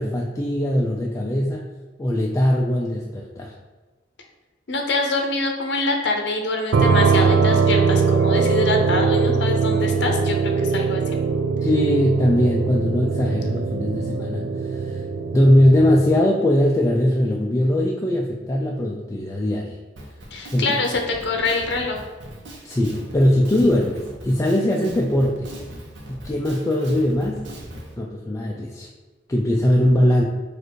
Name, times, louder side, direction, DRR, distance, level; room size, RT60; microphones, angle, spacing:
voice 1, 0.0-1.6 2.0-3.5 11.6-15.0 15.3-19.8 20.5-20.8 22.6-25.5 26.1-27.4 28.0-28.9 29.3-30.2, left 1 dB, 20° left, -1 dB, 0.4 m, -20 dB
voice 2, 4.7-11.0 20.3-22.0, left 2 dB, 70° left, 3 dB, 0.7 m, -24 dB
sound 1, 6.7-16.2, right 5 dB, 75° right, 0.4 m, -21 dB
Drum kit, 20.0-27.9, right 1 dB, 90° right, 1.0 m, -40 dB
4.4 x 2.6 x 4.6 m, 1.3 s
head